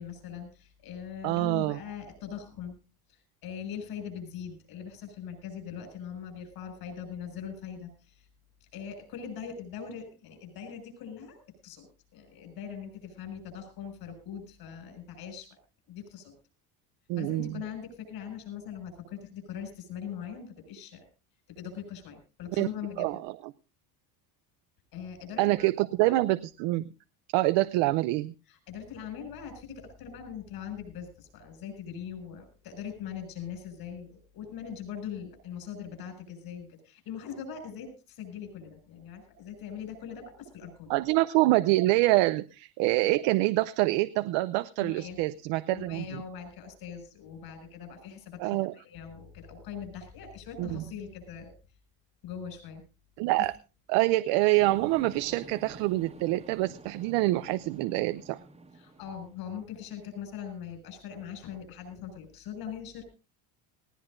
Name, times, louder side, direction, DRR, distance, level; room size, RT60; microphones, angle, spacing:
voice 1, 0.0-2.7 3.1-8.3 8.6-11.9 12.1-15.6 15.9-16.3 17.2-21.0 21.5-23.1 24.9-25.7 26.0-26.2 28.4-41.0 42.1-42.2 44.8-45.2 45.7-51.5 52.2-52.8 53.4-53.5 58.7-63.0, left 8 dB, 60° left, 6 dB, 6.8 m, -41 dB
voice 2, 1.2-1.8 17.1-17.6 22.6-22.7 23.0-23.3 25.4-26.8 27.3-28.3 40.9-46.2 48.4-48.7 50.6-50.8 53.2-53.5 53.9-58.4, right 18 dB, 80° right, 13 dB, 0.7 m, -26 dB
sound 1, 54.5-59.5, right 2 dB, 15° right, 1.5 m, -49 dB
19.5 x 17.0 x 2.6 m, 0.32 s
cardioid pair, 140°, 42 cm